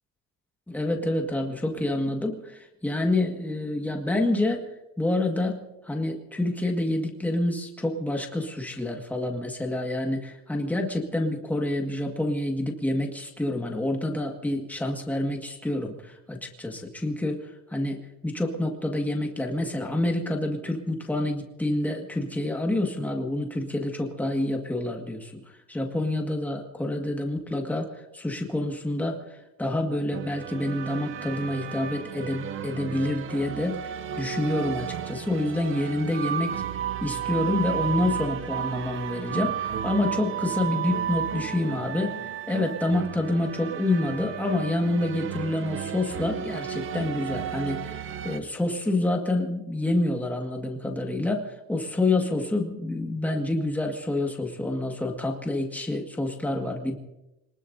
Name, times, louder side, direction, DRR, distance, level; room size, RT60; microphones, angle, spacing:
voice 1, 0.7-4.6 5.0-25.4 25.7-27.9 28.1-36.6 37.0-56.9, left 1 dB, 5° left, 1 dB, 1.8 m, -28 dB
sound 1, 30.1-48.4, right 9 dB, 40° right, 0.7 m, -33 dB
26.0 x 20.0 x 2.7 m, 0.93 s
cardioid pair, 165°, 31 cm